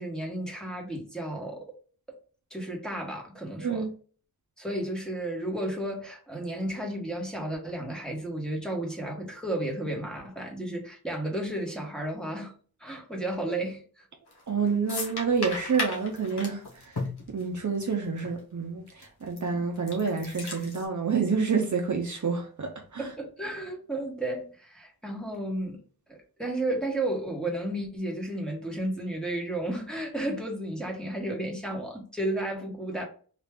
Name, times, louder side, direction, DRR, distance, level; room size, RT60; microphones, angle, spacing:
voice 1, 0.0-1.7 2.5-3.9 4.6-12.5 12.8-14.0 19.4-19.5 23.0-25.8 26.1-33.0, right 1 dB, ahead, 1.2 m, -33 dB
voice 2, 3.6-3.9 14.5-17.0 17.3-23.1, right 5 dB, 50° right, 0.6 m, -28 dB
sound 1, 14.3-14.5 14.9-17.9 18.2-18.3 19.0-19.4 19.8-20.8, left 3 dB, 90° left, 1.1 m, -35 dB
3.3 x 2.4 x 3.5 m
wide cardioid pair, 70°, 38 cm